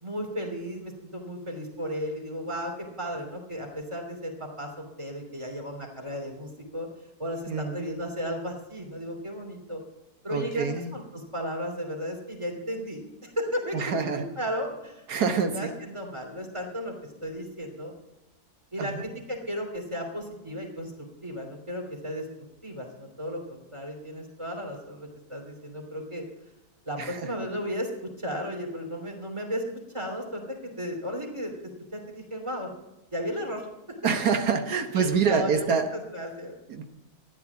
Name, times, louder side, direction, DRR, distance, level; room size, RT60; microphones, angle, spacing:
voice 1, 0.0-6.9 7.2-9.8 10.2-17.9 18.7-20.9 21.2-22.3 22.6-26.2 26.8-29.6 29.9-30.4 30.8-31.5 31.9-32.7 33.1-34.0 34.9-36.6, equal, 20° right, 2 dB, 3.0 m, -35 dB
voice 2, 7.5-7.9 10.3-10.9 13.7-14.2 15.1-15.7 18.8-19.0 27.0-27.3 34.0-35.9 36.7-36.8, right 6 dB, 85° right, 5 dB, 1.8 m, -26 dB
13.5 x 10.5 x 7.0 m, 0.97 s
omnidirectional pair, 1.6 m